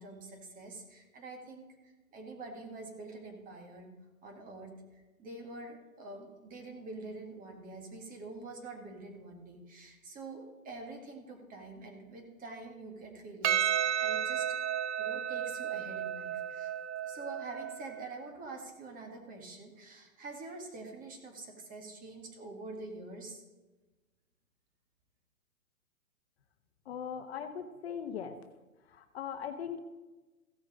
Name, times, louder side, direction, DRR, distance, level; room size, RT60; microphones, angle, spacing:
voice 1, 0.0-1.7 2.1-3.9 4.2-14.6 15.0-16.7 17.0-23.4, right 2 dB, 20° right, 3 dB, 1.9 m, -46 dB
Percussion, 13.4-18.1, right 9 dB, 55° right, 0.7 m, -33 dB
voice 2, 26.8-28.4 28.9-29.8, left 8 dB, 45° left, 7 dB, 1.1 m, -39 dB
15.5 x 6.1 x 5.1 m, 1.2 s
hypercardioid pair, 130°, 42 cm